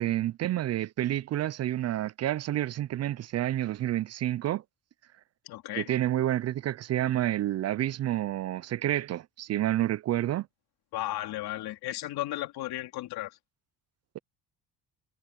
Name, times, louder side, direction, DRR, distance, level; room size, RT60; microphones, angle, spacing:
voice 1, 0.0-4.6 5.8-10.5, right 13 dB, 45° right, 0.4 m, -29 dB
voice 2, 5.4-5.9 10.9-13.4, left 15 dB, 85° left, 3.4 m, -34 dB
cardioid pair, 110°, 37 cm